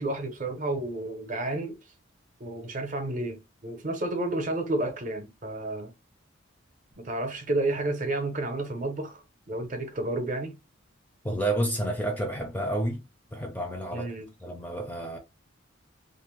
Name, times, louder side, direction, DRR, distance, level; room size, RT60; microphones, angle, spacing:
voice 1, 0.0-1.8 2.4-5.9 7.0-10.5 13.9-14.3, right 2 dB, 40° right, 0.6 m, -31 dB
voice 2, 11.2-13.0 13.3-14.1 14.4-15.2, right 1 dB, 10° left, 0.4 m, -30 dB
2.5 x 2.0 x 3.0 m
head